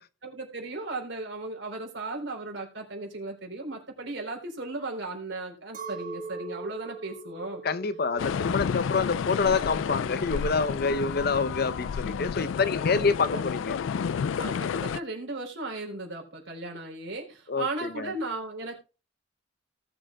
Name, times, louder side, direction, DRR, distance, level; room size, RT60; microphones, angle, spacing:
voice 1, 0.2-7.6 8.6-8.7 12.5-12.6 13.3-13.4 14.4-18.8, right 2 dB, 70° right, 4.0 m, -36 dB
Chink clink, 5.7-11.2, right 4 dB, 45° right, 1.6 m, -42 dB
voice 2, 7.6-13.8 17.5-18.1, left 4 dB, 55° left, 0.8 m, -27 dB
sound 1, 8.2-15.0, left 7 dB, 85° left, 0.4 m, -30 dB
19.0 x 6.4 x 2.3 m
head